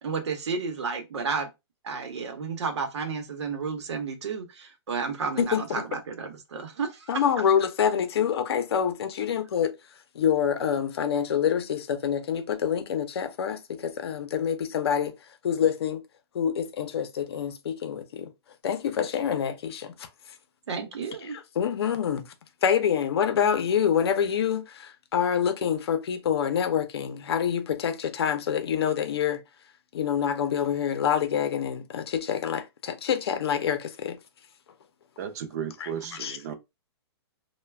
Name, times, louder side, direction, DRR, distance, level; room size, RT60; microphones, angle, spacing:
voice 1, 0.0-1.5 1.8-7.2 20.7-21.4, right 5 dB, 85° right, 0.8 m, -32 dB
voice 2, 5.4-5.8 7.1-9.7 10.1-15.1 15.4-16.0 16.3-18.3 18.6-19.9 21.6-22.3 22.6-29.4 29.9-34.2 36.2-36.4, left 8 dB, 65° left, 0.6 m, -26 dB
voice 3, 35.2-36.5, right 8 dB, 35° right, 0.5 m, -34 dB
2.3 x 2.2 x 3.2 m
hypercardioid pair, 160°, 14 cm